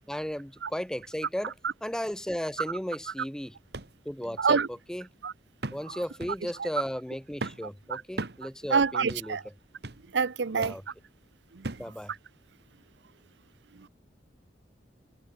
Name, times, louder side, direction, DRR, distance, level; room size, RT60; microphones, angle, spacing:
voice 1, 0.1-1.5 1.8-3.5 4.1-5.1 5.7-9.4 10.5-10.8 11.8-12.1, equal, 5° left, 0.6 m, -35 dB
sound 1, 3.7-3.9 4.4-4.5 5.6-5.9 6.2-6.4 7.4-7.7 8.2-8.4 9.1-9.3 9.8-10.1 10.6-10.8 11.6-11.9 12.6-12.7, right 2 dB, 65° right, 1.6 m, -37 dB
voice 2, 4.4-4.7 5.2-5.3 5.9-6.0 6.6-6.7 7.9-8.0 8.7-9.4 10.1-10.7 11.5-11.7 13.7-13.9, right 5 dB, 90° right, 0.7 m, -27 dB
head